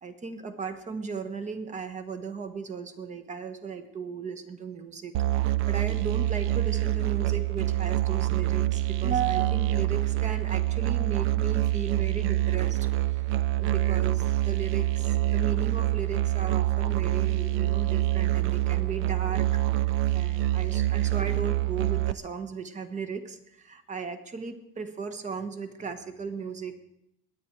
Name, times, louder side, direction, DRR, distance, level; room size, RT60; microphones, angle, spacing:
voice 1, 0.0-12.8 13.1-26.7, right 5 dB, 20° right, 9 dB, 1.2 m, -36 dB
Musical instrument, 5.1-22.1, right 16 dB, 45° right, 0.5 m, -26 dB
22.0 x 9.0 x 4.7 m, 0.78 s
cardioid pair, 150°, 32 cm